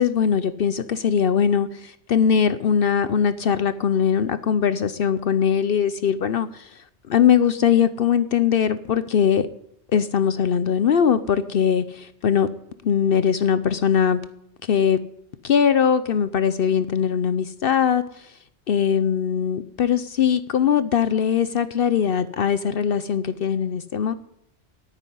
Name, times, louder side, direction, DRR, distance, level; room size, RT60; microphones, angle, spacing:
voice 1, 0.0-6.7 7.1-9.5 9.9-12.5 12.8-14.2 14.6-15.0 15.4-18.0 18.7-24.1, left 8 dB, 60° left, 13 dB, 0.8 m, -21 dB
9.3 x 9.3 x 9.8 m, 0.73 s
omnidirectional pair, 1.1 m